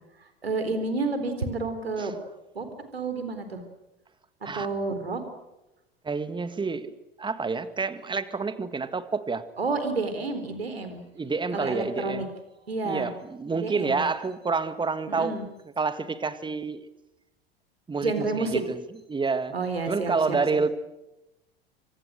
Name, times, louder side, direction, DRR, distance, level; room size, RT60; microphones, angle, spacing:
voice 1, 0.4-2.1 2.5-2.7 2.9-3.6 4.5-5.2 9.6-11.0 11.5-12.3 12.7-13.1 13.5-14.0 15.1-15.5 18.0-18.6 19.5-20.4, right 3 dB, 85° right, 9 dB, 4.0 m, -29 dB
voice 2, 6.0-6.9 7.2-9.5 11.2-12.3 12.8-15.4 15.8-16.9 17.9-18.8 19.1-19.6 19.9-20.7, right 4 dB, 15° right, 12 dB, 1.9 m, -28 dB
29.0 x 25.0 x 6.5 m, 0.95 s
figure-of-eight pair, 80°, 30 cm